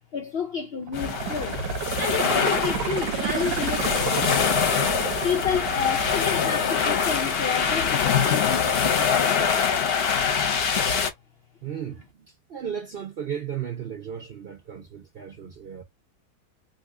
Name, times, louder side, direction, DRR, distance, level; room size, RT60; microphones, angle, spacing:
voice 1, 0.1-1.6 2.0-4.7 5.2-9.3, left 7 dB, 80° left, 0.5 m, -30 dB
sound 1, 0.8-7.8 8.2-8.3, right 10 dB, 90° right, 1.1 m, -32 dB
sound 2, 0.9-11.1, left 6 dB, 50° left, 0.8 m, -24 dB
voice 2, 11.6-15.8, right 8 dB, 55° right, 0.6 m, -35 dB
2.7 x 2.6 x 3.5 m
omnidirectional pair, 1.7 m